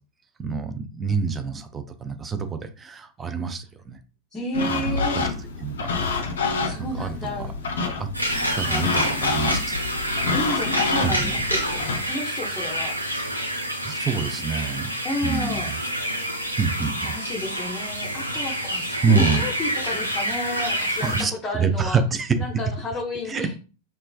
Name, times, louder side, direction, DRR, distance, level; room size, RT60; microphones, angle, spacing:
voice 1, 0.4-4.0 4.7-4.8 5.1-5.3 5.6-5.9 6.8-7.5 8.0-8.1 8.5-9.8 11.0-11.4 13.8-14.9 15.2-15.8 16.6-17.2 19.0-19.4 21.0-21.3 21.6-22.4 23.3-23.5, right 5 dB, 20° right, 9 dB, 0.4 m, -26 dB
voice 2, 4.3-5.2 6.3-7.5 8.3-8.8 10.3-13.0 15.0-15.7 16.8-22.0 22.4-23.5, left 1 dB, 15° left, -4 dB, 0.7 m, -32 dB
sound 1, 4.5-12.0, left 4 dB, 65° left, 0.4 m, -28 dB
sound 2, 8.1-21.2, equal, 90° right, 0.5 m, -27 dB
3.1 x 2.2 x 2.3 m, 0.35 s
figure-of-eight pair, 90°, 0 cm